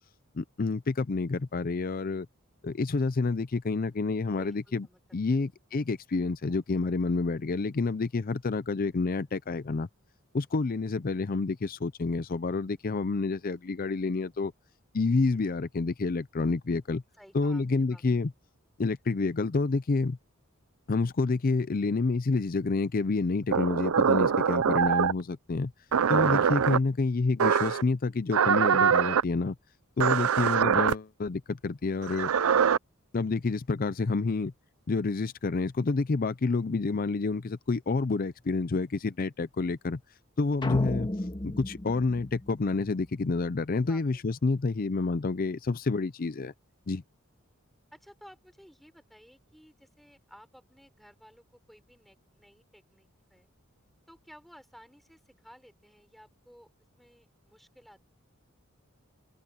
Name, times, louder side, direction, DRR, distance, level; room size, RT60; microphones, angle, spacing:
voice 1, 0.4-2.3 2.6-4.9 5.1-9.9 10.3-14.5 14.9-17.0 17.3-18.3 18.8-20.2 20.9-25.7 26.1-29.5 30.0-32.3 33.1-34.5 34.9-40.0 40.4-41.1 41.4-46.5 46.9-47.0, left 3 dB, 45° left, 0.5 m, -28 dB
voice 2, 4.4-5.0 5.3-5.5 17.2-18.3 43.7-44.2 47.9-53.5 54.1-56.7 57.0-58.0, equal, ahead, 5.4 m, -55 dB
sound 1, 23.5-25.2 25.9-26.8 27.4-27.8 28.3-29.2 30.0-30.9 32.0-32.8, right 7 dB, 85° right, 0.5 m, -23 dB
sound 2, 40.6-43.1, left 1 dB, 20° left, 1.6 m, -35 dB
head